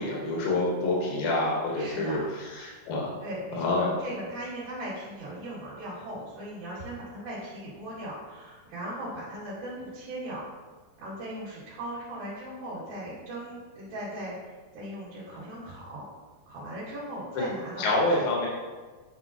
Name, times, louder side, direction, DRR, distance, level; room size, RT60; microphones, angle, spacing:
voice 1, 0.0-2.2 2.5-3.1 3.6-3.9 17.8-18.5, left 2 dB, 80° left, -3 dB, 2.8 m, -27 dB
voice 2, 1.8-2.3 3.2-10.5 11.0-16.1 16.5-18.3, right 1 dB, 85° right, -11 dB, 3.8 m, -38 dB
9.4 x 5.1 x 2.8 m, 1.4 s
omnidirectional pair, 4.1 m